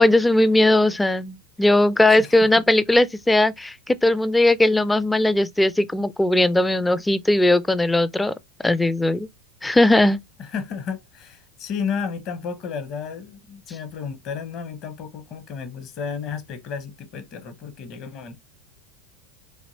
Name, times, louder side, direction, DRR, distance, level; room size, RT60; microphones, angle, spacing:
voice 1, 0.0-8.3 8.6-9.3 9.6-10.2, left 1 dB, 10° left, 0.4 m, -18 dB
voice 2, 10.4-18.4, left 6 dB, 40° left, 0.9 m, -32 dB
4.1 x 2.8 x 2.7 m
figure-of-eight pair, 85°, 0 cm